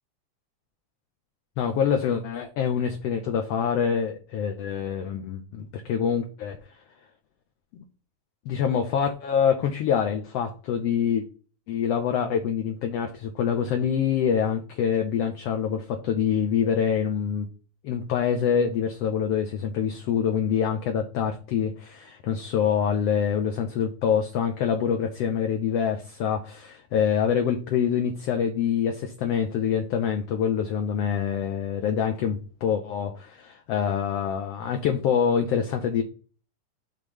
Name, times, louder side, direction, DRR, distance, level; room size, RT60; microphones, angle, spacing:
voice 1, 1.6-6.6 7.7-7.8 8.4-11.3 11.7-17.5 17.8-36.0, left 7 dB, 75° left, 4 dB, 1.5 m, -25 dB
6.8 x 3.2 x 5.4 m, 0.37 s
omnidirectional pair, 3.5 m